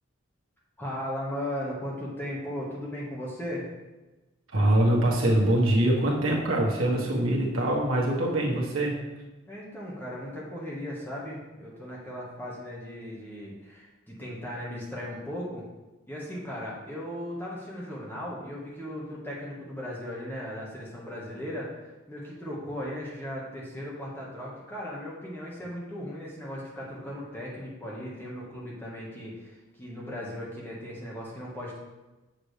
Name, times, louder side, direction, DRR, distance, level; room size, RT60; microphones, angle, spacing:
voice 1, 0.8-3.7 9.5-15.6 16.1-31.8, equal, 10° left, -5 dB, 1.5 m, -37 dB
voice 2, 4.5-8.9, right 1 dB, 80° right, -2 dB, 1.5 m, -23 dB
7.3 x 6.5 x 3.3 m, 1.1 s
head